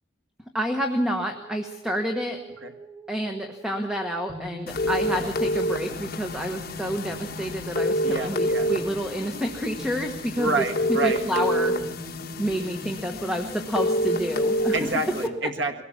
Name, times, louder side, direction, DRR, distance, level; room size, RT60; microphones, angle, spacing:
voice 1, 0.5-2.4 3.1-10.6 10.9-11.8 12.4-14.7, equal, 5° right, 4 dB, 1.3 m, -29 dB
sound 1, 1.4-15.2, left 2 dB, 20° right, 2.7 m, -41 dB
sound 2, 4.7-15.3, equal, 50° left, 1.4 m, -28 dB
voice 2, 8.0-8.7 10.4-11.2 14.7-15.8, right 3 dB, 65° right, 5 dB, 2.0 m, -28 dB
22.5 x 17.5 x 7.3 m, 0.96 s
head